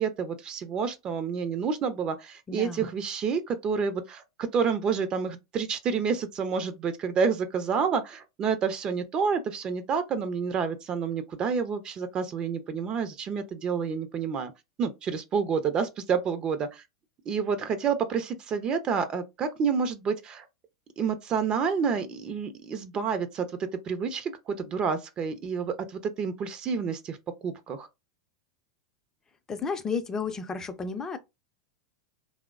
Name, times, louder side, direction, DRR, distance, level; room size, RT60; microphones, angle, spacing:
voice 1, 0.0-14.5 14.8-16.8 17.3-20.5 21.0-23.5 23.9-25.7 26.0-27.2 27.4-27.9, right 6 dB, 35° right, 0.5 m, -29 dB
voice 2, 2.5-2.9 29.5-31.2, left 5 dB, 20° left, 0.5 m, -32 dB
3.1 x 2.0 x 2.4 m
hypercardioid pair, 95°, 3 cm